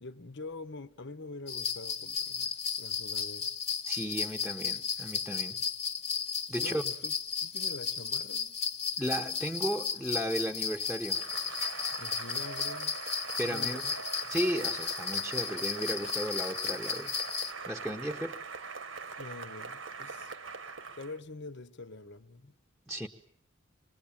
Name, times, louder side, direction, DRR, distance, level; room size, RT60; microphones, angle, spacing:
voice 1, 0.0-3.5 6.6-7.1 7.4-8.6 12.0-13.0 13.4-14.0 19.2-20.3 20.9-22.6, left 3 dB, 60° left, 1.2 m, -45 dB
sound 1, 1.5-17.5, left 6 dB, 30° left, 1.4 m, -34 dB
voice 2, 3.8-5.6 6.5-6.8 9.0-11.3 13.4-13.8 14.3-17.4 17.7-18.4 22.9-23.1, equal, ahead, 1.2 m, -35 dB
Cheering / Applause, 11.1-21.2, right 4 dB, 70° right, 1.6 m, -42 dB
26.0 x 21.0 x 8.9 m
head